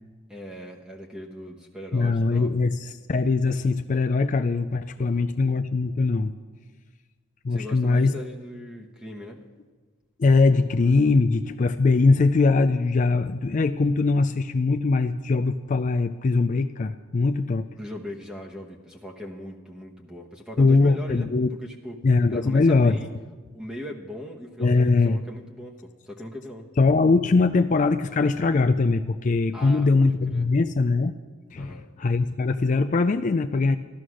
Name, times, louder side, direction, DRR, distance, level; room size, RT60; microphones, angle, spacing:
voice 1, 0.3-2.5 5.0-5.3 7.5-9.5 17.8-21.3 21.6-22.0 22.3-23.1 23.5-26.7 29.5-30.5 31.5-31.9, equal, 5° right, 0 dB, 1.1 m, -39 dB
voice 2, 1.9-6.3 7.4-8.1 10.2-17.7 20.6-21.5 22.0-23.0 24.6-25.2 26.8-31.2 31.5-33.8, left 3 dB, 40° left, 9 dB, 0.4 m, -21 dB
13.0 x 13.0 x 6.2 m, 1.4 s
head